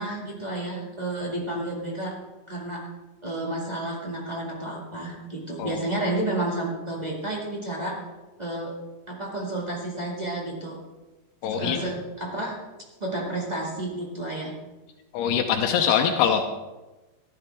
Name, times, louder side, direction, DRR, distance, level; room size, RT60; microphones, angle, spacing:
voice 1, 0.0-2.1 2.5-2.9 3.2-8.0 8.4-8.7 9.1-10.8 11.5-12.6 13.0-14.5, right 1 dB, 20° right, -3 dB, 1.0 m, -31 dB
voice 2, 11.4-11.8 15.1-16.5, left 8 dB, 85° left, 4 dB, 2.8 m, -23 dB
14.5 x 12.0 x 3.5 m, 1.1 s
omnidirectional pair, 4.6 m